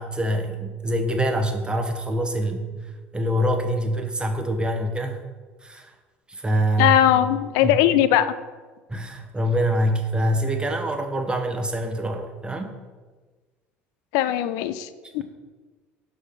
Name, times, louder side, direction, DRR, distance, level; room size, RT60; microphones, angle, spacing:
voice 1, 0.0-2.7 3.1-5.2 5.6-5.9 6.3-7.1 7.6-7.7 8.9-12.8, right 1 dB, 15° right, 4 dB, 1.0 m, -25 dB
voice 2, 6.8-8.3 14.1-15.2, left 12 dB, 70° left, 13 dB, 0.4 m, -20 dB
6.1 x 3.4 x 5.6 m, 1.4 s
hypercardioid pair, 70°, 7 cm